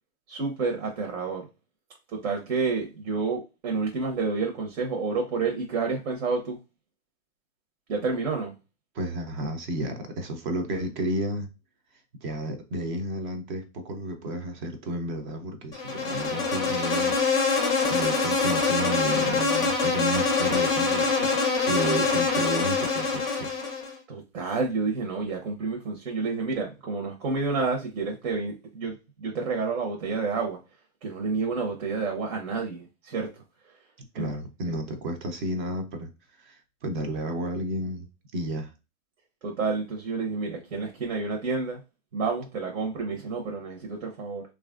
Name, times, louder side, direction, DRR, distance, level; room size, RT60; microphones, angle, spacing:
voice 1, 0.3-1.4 2.1-6.6 7.9-8.5 24.1-30.6 31.0-33.3 34.2-34.3 34.7-34.8 39.4-41.8 42.1-44.4, right 4 dB, 70° right, 1.0 m, -29 dB
voice 2, 8.9-11.5 12.2-17.2 17.9-21.3 21.6-23.5 34.1-36.1 36.4-38.1 38.3-38.7, right 1 dB, 40° right, 0.6 m, -32 dB
Insect, 15.7-23.9, left 4 dB, 10° left, 0.5 m, -25 dB
3.1 x 2.4 x 2.4 m
hypercardioid pair, 135°, 40 cm